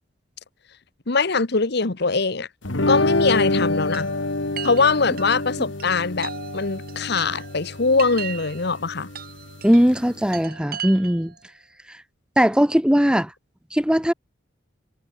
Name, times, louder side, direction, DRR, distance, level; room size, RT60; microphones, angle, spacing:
voice 1, 1.1-2.5 2.9-4.1 4.6-9.1, left 4 dB, 60° left, 1.2 m, -22 dB
sound 1, 2.6-10.4, left 2 dB, 80° left, 2.2 m, -27 dB
Chime, 3.3-11.4, right 8 dB, 55° right, 6.0 m, -39 dB
voice 2, 9.6-11.3 11.9-12.0 12.4-13.3 13.7-14.1, equal, 5° right, 1.1 m, -19 dB
head